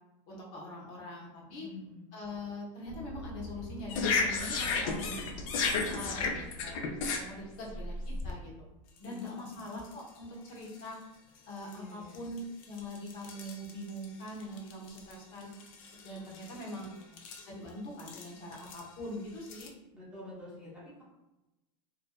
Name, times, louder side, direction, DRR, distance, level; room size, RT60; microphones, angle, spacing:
voice 1, 0.3-1.7 2.1-5.3 5.8-6.8 7.1-8.5 9.0-11.0 11.5-15.5 16.0-16.9 17.4-19.7, left 1 dB, 55° left, -3 dB, 0.8 m, -42 dB
voice 2, 1.6-2.0 9.0-9.6 11.7-12.2 16.2-16.4 16.7-17.1 19.9-21.0, left 2 dB, 5° right, -8 dB, 0.5 m, -48 dB
sound 1, 2.8-7.7, left 1 dB, 75° right, 0.6 m, -47 dB
sound 2, 3.9-8.3 9.0-9.2 9.5-9.9 10.6-10.8 11.7-11.8 12.1-15.1 15.4-16.8 17.2-17.4 18.0-18.8 19.5-19.7, left 4 dB, 80° left, 0.4 m, -34 dB
2.5 x 2.2 x 2.2 m, 0.98 s
supercardioid pair, 160°, 17 cm